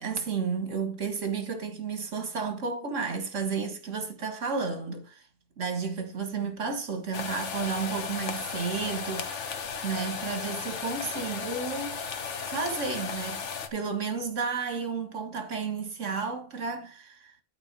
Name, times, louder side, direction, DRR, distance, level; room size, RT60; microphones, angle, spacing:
voice 1, 0.0-5.2 5.6-12.0 12.4-13.4 13.7-17.3, right 5 dB, 70° right, 2.1 m, -32 dB
sound 1, 7.1-13.7, left 6 dB, 65° left, 1.3 m, -35 dB
12.0 x 4.1 x 5.4 m
omnidirectional pair, 1.3 m